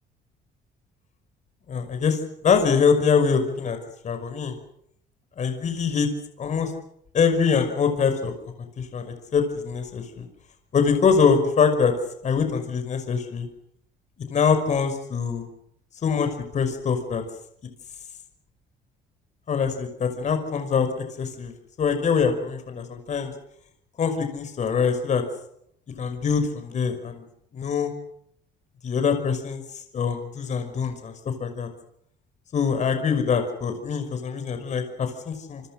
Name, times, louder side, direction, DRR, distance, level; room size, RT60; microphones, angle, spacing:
voice 1, 1.7-3.8 4.0-4.6 5.4-6.1 6.4-6.7 7.1-8.3 8.8-10.3 10.7-11.9 12.2-13.5 14.3-15.5 16.0-17.2 19.5-21.5 21.8-23.3 24.0-25.2 26.0-27.2 27.5-27.9 28.8-31.7 32.5-35.6, left 6 dB, 45° left, 7 dB, 5.8 m, -24 dB
27.5 x 25.0 x 6.5 m, 0.71 s
cardioid pair, 110°, 17 cm